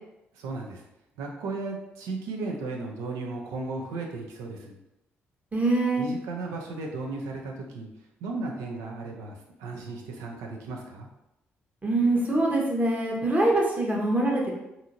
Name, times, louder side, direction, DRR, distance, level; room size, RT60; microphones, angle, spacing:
voice 1, 0.3-0.8 1.2-4.8 6.0-7.9 8.2-11.1, right 3 dB, 85° right, 1 dB, 0.5 m, -35 dB
voice 2, 5.5-6.0 11.8-14.5, right 2 dB, 30° right, -2 dB, 1.0 m, -24 dB
2.8 x 2.6 x 2.6 m, 0.89 s
supercardioid pair, 55°, 5 cm